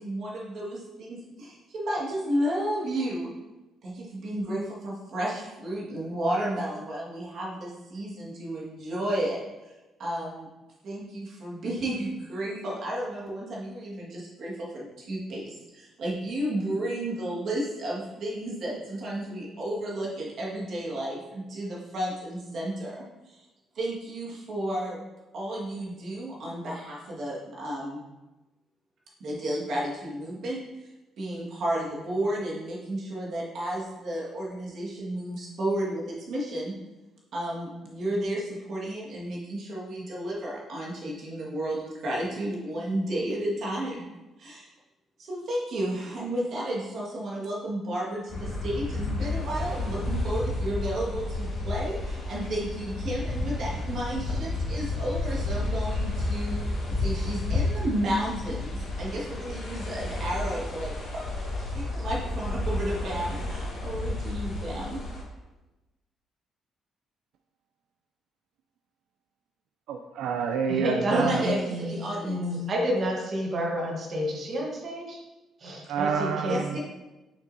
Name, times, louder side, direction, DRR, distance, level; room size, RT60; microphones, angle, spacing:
voice 1, 0.0-3.3 3.8-9.4 9.7-9.8 10.0-10.5 10.8-23.4 23.7-25.1 25.3-28.0 29.2-30.6 31.2-36.7 37.3-44.0 44.4-44.7 45.2-56.6 57.0-65.0 71.1-72.6 76.4-76.8, right 1 dB, 50° right, -4 dB, 1.7 m, -32 dB
sound 1, 48.3-65.2, left 2 dB, 40° left, 1.6 m, -31 dB
voice 2, 69.9-71.5 75.9-76.8, right 6 dB, 85° right, 5 dB, 0.4 m, -28 dB
voice 3, 70.7-71.9 72.2-75.2 75.6-76.6, equal, 35° right, -1 dB, 1.2 m, -29 dB
6.5 x 6.1 x 2.7 m, 1.1 s
cardioid pair, 160°, 0 cm